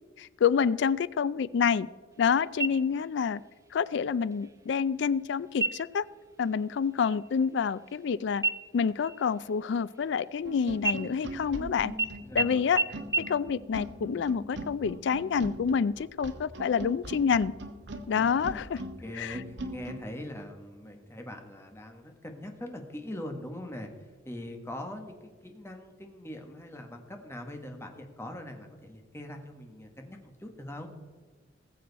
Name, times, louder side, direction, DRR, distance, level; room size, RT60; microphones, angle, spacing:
voice 1, 0.2-1.9 2.2-3.4 3.7-6.1 6.4-8.4 8.7-11.9 12.3-12.8 13.2-17.5 18.1-18.8 19.1-19.4, left 6 dB, 65° left, 19 dB, 0.4 m, -28 dB
sound 1, 2.6-3.3 3.7-3.8 4.3-4.8 5.5-6.1 6.4-6.7 7.0-8.1 8.4-10.4 10.8-11.6 12.0-12.1 12.4-12.5 12.8-12.9 13.1-13.2, right 3 dB, 15° right, 0.6 m, -32 dB
sound 2, 10.4-20.0, right 1 dB, 65° right, 1.3 m, -40 dB
voice 2, 12.2-12.8 18.2-30.9, left 1 dB, 15° left, 4 dB, 1.5 m, -42 dB
19.5 x 7.7 x 4.1 m, 1.4 s
head